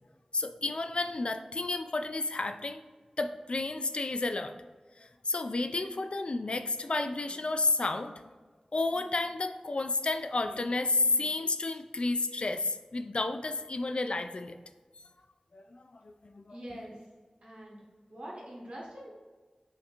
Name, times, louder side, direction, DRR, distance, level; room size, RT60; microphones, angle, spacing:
voice 1, 0.3-2.8 3.2-4.5 5.0-8.3 8.7-14.6 15.5-16.8, left 2 dB, 60° left, 8 dB, 0.3 m, -31 dB
voice 2, 16.5-17.0 17.4-17.8 18.1-19.1, equal, 85° right, -6 dB, 1.4 m, -44 dB
5.6 x 2.9 x 2.5 m, 1.3 s
wide cardioid pair, 50°, 2 cm